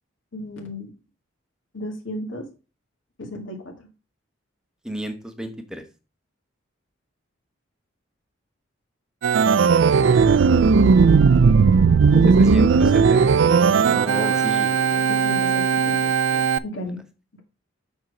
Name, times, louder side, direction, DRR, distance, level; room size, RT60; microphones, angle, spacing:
voice 1, 0.3-0.9 1.7-2.4 3.2-3.9 12.1-12.9 15.0-16.1 16.6-17.0, left 1 dB, 70° left, 2 dB, 1.8 m, -33 dB
voice 2, 4.8-5.8 12.5-13.2 13.9-15.0 16.3-16.5, right 1 dB, 5° right, 7 dB, 0.9 m, -33 dB
Organ, 9.2-16.6, right 5 dB, 65° right, 0.3 m, -17 dB
7.4 x 4.4 x 4.9 m, 0.32 s
head